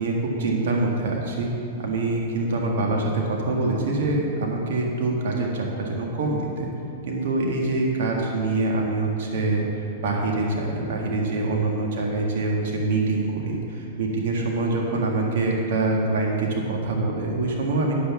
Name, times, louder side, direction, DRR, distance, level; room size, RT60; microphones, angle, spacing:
voice 1, 0.0-1.5 1.8-6.7 7.1-17.9, right 2 dB, 70° right, -1 dB, 1.7 m, -25 dB
9.3 x 6.0 x 7.0 m, 2.9 s
hypercardioid pair, 145°, 0 cm